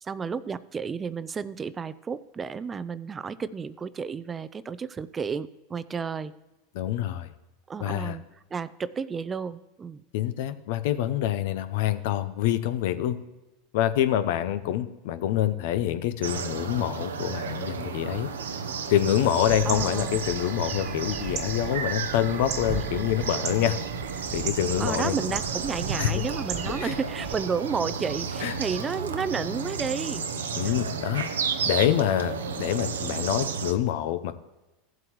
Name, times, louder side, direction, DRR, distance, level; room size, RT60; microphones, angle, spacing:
voice 1, 0.0-6.3 7.7-8.2 8.5-10.0 19.6-20.2 24.8-30.8 31.5-31.6, right 6 dB, 25° right, 16 dB, 0.4 m, -32 dB
voice 2, 6.7-7.3 7.8-8.2 10.1-13.2 13.7-18.3 18.9-23.8 24.3-25.2 26.0-26.1 26.8-26.9 28.4-28.5 30.6-31.2 31.6-34.3, left 12 dB, 70° left, 12 dB, 0.7 m, -26 dB
sound 1, 16.2-33.7, right 5 dB, 90° right, 0.7 m, -32 dB
sound 2, 19.5-27.4, right 6 dB, 50° right, 1.3 m, -37 dB
15.5 x 7.7 x 3.1 m, 1.1 s
hypercardioid pair, 95°, 0 cm